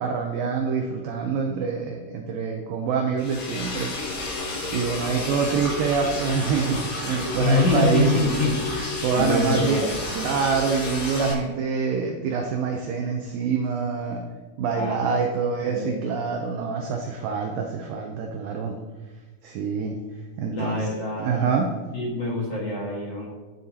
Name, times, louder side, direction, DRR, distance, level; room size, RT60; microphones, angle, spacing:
voice 1, 0.0-3.9 4.7-8.1 9.0-9.8 10.1-14.2 14.6-18.8 19.4-20.0 20.4-20.9 21.2-21.7, right 5 dB, 75° right, 3 dB, 2.2 m, -26 dB
Liquid, 3.2-11.3, left 2 dB, 75° left, 6.0 m, -31 dB
voice 2, 7.4-9.9 14.7-15.1 15.6-16.0 20.5-21.5 21.9-23.3, left 2 dB, 50° left, -4 dB, 2.2 m, -25 dB
20.0 x 7.7 x 2.9 m, 1.3 s
omnidirectional pair, 4.7 m